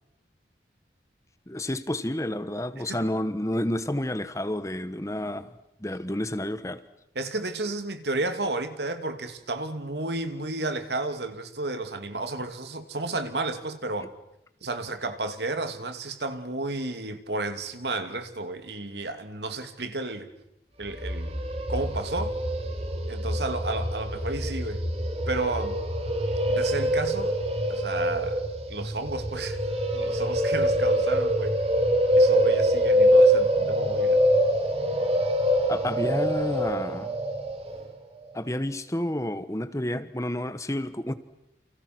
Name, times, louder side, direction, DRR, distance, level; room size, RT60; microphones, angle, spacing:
voice 1, 1.5-5.5 5.8-6.8 35.7-37.2 38.3-41.1, left 1 dB, 15° left, 12 dB, 1.2 m, -30 dB
voice 2, 7.1-14.1 14.6-20.3 20.8-21.4 21.7-22.4 23.1-24.8 25.3-25.8 26.5-27.3 27.7-28.4 28.7-29.6 29.9-31.5 32.2-34.2, right 2 dB, 75° right, 8 dB, 2.8 m, -32 dB
sound 1, 20.9-37.9, equal, 35° right, 3.2 m, -24 dB
29.5 x 29.5 x 6.2 m, 0.83 s
head